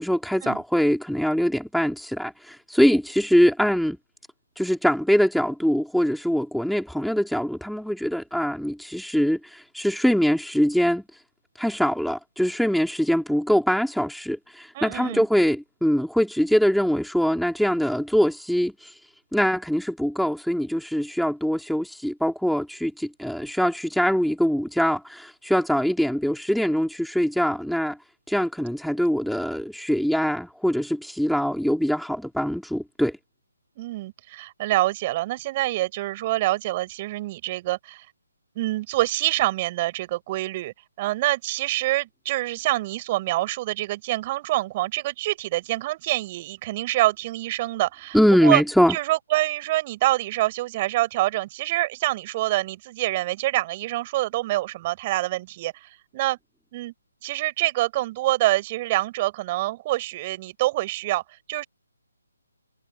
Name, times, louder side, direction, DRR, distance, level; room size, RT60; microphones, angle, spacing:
voice 1, 0.0-4.0 4.6-11.0 11.6-19.0 19.3-28.0 28.3-33.2 48.1-49.0, equal, ahead, 3.3 m, -23 dB
voice 2, 14.7-15.2 33.8-38.0 38.5-48.6 48.9-56.4 56.7-56.9 57.2-61.2 61.5-61.7, right 17 dB, 30° right, 4.8 m, -26 dB
figure-of-eight pair, 145°, 0 cm